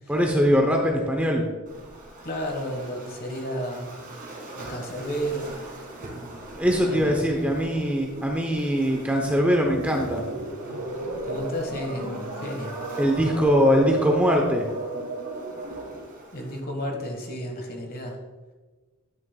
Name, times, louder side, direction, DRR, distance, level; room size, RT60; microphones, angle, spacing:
voice 1, 0.1-1.4 6.5-10.2 13.0-14.7, equal, 5° right, 1 dB, 0.6 m, -22 dB
Waves surf, 1.7-16.6, right 2 dB, 40° right, 1.9 m, -44 dB
voice 2, 2.2-4.0 4.5-5.6 6.9-7.4 11.2-12.8 16.3-18.2, equal, 45° left, 2 dB, 1.3 m, -32 dB
sound 1, 9.6-16.0, right 2 dB, 85° right, 1.8 m, -34 dB
11.0 x 6.3 x 2.2 m, 1.3 s
head